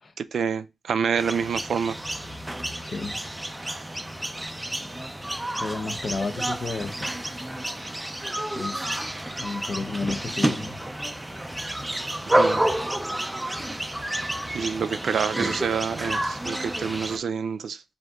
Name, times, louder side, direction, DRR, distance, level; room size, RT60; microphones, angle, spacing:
voice 1, 0.2-2.0 12.3-12.6 14.5-17.8, right 6 dB, 85° right, 0.4 m, -27 dB
sound 1, 1.2-17.2, right 1 dB, 10° right, 0.4 m, -29 dB
voice 2, 2.8-3.2 5.6-7.1 8.5-8.9 9.4-10.8, left 3 dB, 45° left, 0.6 m, -32 dB
6.3 x 2.7 x 2.3 m
wide cardioid pair, 175°, 0 cm